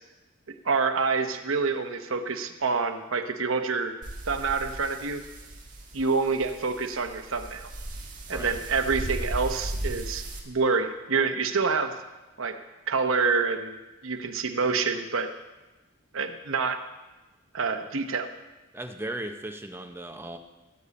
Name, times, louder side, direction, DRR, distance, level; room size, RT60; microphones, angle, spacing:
voice 1, 0.6-3.9 4.3-5.2 5.9-7.7 8.3-11.9 12.4-12.5 12.9-15.3 16.1-16.8 17.5-18.3, right 4 dB, 65° right, 6 dB, 0.9 m, -27 dB
sound 1, 4.0-10.4, right 1 dB, 35° right, 1.8 m, -37 dB
voice 2, 18.7-20.4, right 1 dB, 10° right, 5 dB, 0.7 m, -36 dB
18.0 x 8.4 x 4.2 m, 1.1 s
head